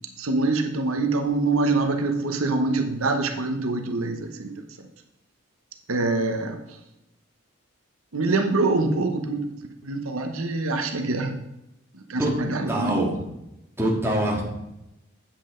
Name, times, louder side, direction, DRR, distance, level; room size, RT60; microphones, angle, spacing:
voice 1, 0.2-4.9 5.9-6.8 8.1-9.5 9.8-11.4 11.9-13.1, right 3 dB, 90° right, 5 dB, 1.0 m, -25 dB
voice 2, 12.7-13.1 13.8-14.4, right 1 dB, 10° right, -3 dB, 1.9 m, -24 dB
8.5 x 7.6 x 3.8 m, 0.88 s
head